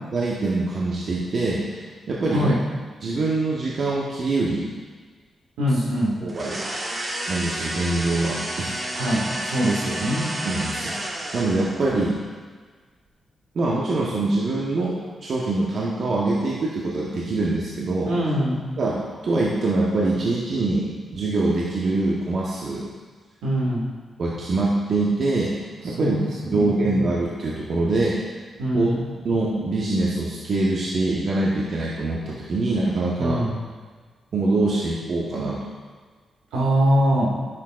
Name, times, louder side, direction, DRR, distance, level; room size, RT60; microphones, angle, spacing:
voice 1, 0.1-2.5 3.0-4.7 6.2-6.6 7.3-8.7 10.4-11.0 11.3-12.2 13.5-18.1 18.8-22.9 24.2-25.5 25.8-26.2 26.5-28.2 28.7-28.9 29.2-33.4 34.3-35.6, right 2 dB, 65° right, -5 dB, 1.2 m, -24 dB
voice 2, 5.6-6.2 8.9-10.3 18.0-18.6 23.4-23.9 26.0-26.9 28.6-29.1 33.2-33.6 36.5-37.4, equal, 90° right, -5 dB, 2.0 m, -23 dB
sound 1, 6.3-11.9, right 1 dB, 35° right, 1.6 m, -30 dB
10.5 x 7.3 x 2.5 m, 1.5 s
supercardioid pair, 50°, 0 cm